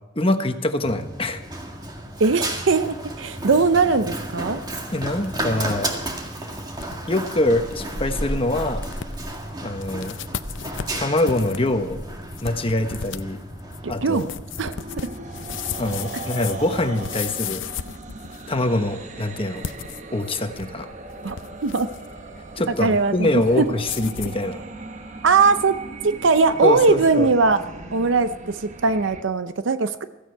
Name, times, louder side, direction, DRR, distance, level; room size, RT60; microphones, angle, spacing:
voice 1, 0.1-1.4 4.9-5.9 7.1-8.8 9.6-10.2 10.9-12.0 12.4-13.4 13.9-14.3 15.8-17.7 18.5-19.6 20.1-20.9 22.6-24.6 26.6-27.3, left 1 dB, 30° left, 7 dB, 1.2 m, -24 dB
Run, 0.8-16.9, right 1 dB, 20° right, 1.9 m, -33 dB
voice 2, 2.2-4.6 13.8-14.3 14.6-15.1 21.2-21.4 21.6-21.9 22.8-23.7 25.2-27.6 27.9-30.0, right 4 dB, 85° right, 11 dB, 0.6 m, -20 dB
sound 1, 4.9-5.8 6.1-6.2 6.8-7.0 7.4-7.5 7.7-8.0 8.5-8.6 8.8-9.4 9.8-18.6 19.5-20.8 21.1-22.1 23.8-24.4, left 8 dB, 85° left, 0.6 m, -35 dB
sound 2, 14.7-29.2, right 2 dB, 40° right, 1.1 m, -39 dB
16.0 x 15.0 x 4.6 m, 1.2 s
head